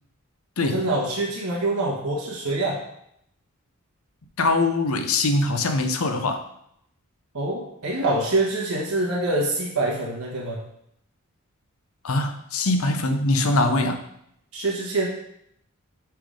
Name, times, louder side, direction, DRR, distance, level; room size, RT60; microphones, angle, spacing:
voice 1, 0.6-2.8 7.3-10.6 14.5-15.1, right 2 dB, 90° right, -3 dB, 1.2 m, -25 dB
voice 2, 4.4-6.4 12.0-14.0, left 2 dB, 70° left, 7 dB, 0.7 m, -22 dB
5.7 x 3.5 x 5.1 m, 0.74 s
head